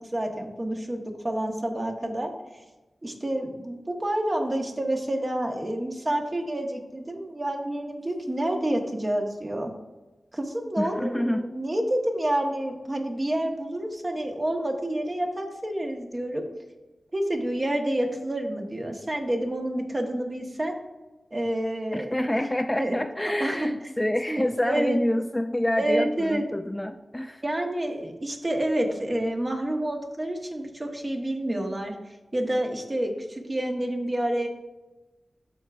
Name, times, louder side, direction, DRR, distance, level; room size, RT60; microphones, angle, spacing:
voice 1, 0.0-2.6 3.0-9.7 10.3-16.4 17.1-20.7 21.3-22.2 22.5-23.0 23.4-23.7 24.3-25.0 25.8-26.4 27.4-31.9 32.3-34.5, right 1 dB, 35° right, 2 dB, 1.2 m, -28 dB
voice 2, 10.8-11.4 21.9-27.4, left 1 dB, 15° left, 7 dB, 0.3 m, -27 dB
12.0 x 4.6 x 2.5 m, 1.1 s
cardioid pair, 55°, 0 cm